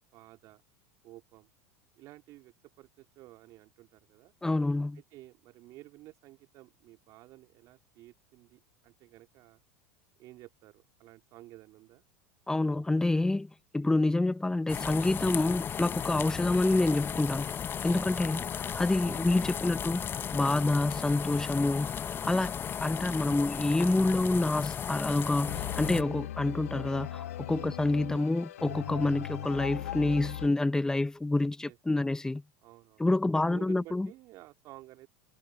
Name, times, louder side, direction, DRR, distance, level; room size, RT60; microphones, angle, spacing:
voice 1, 0.1-0.6 1.0-1.5 1.9-4.3 4.9-9.6 10.2-12.0 17.9-18.1 18.4-18.6 19.0-19.2 23.2-23.3 27.5-27.7 31.6-32.1 32.6-33.0 33.3-35.1, right 17 dB, 50° right, 2.8 m, -52 dB
voice 2, 4.4-5.0 12.5-17.5 17.8-20.0 20.3-32.4 33.0-34.1, left 2 dB, 10° left, 1.1 m, -28 dB
sound 1, 14.7-26.0, left 8 dB, 30° left, 0.9 m, -35 dB
sound 2, 25.5-30.5, left 12 dB, 75° left, 1.4 m, -39 dB
hypercardioid pair, 85°, 7 cm